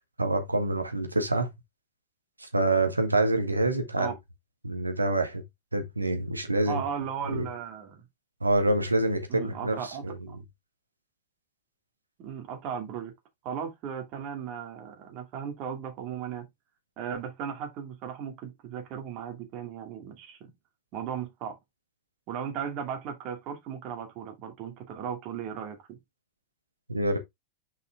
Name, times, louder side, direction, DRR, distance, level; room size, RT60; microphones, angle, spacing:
voice 1, 0.2-1.5 2.4-4.1 4.6-5.4 5.7-6.8 7.3-7.4 8.4-10.2 26.9-27.2, right 2 dB, 80° right, 1.8 m, -26 dB
voice 2, 6.7-8.0 9.3-10.4 12.2-13.1 13.4-16.5 17.0-20.5 20.9-21.6 22.3-26.0, right 7 dB, 40° right, 2.6 m, -36 dB
6.4 x 5.5 x 3.5 m
figure-of-eight pair, 90°, 0 cm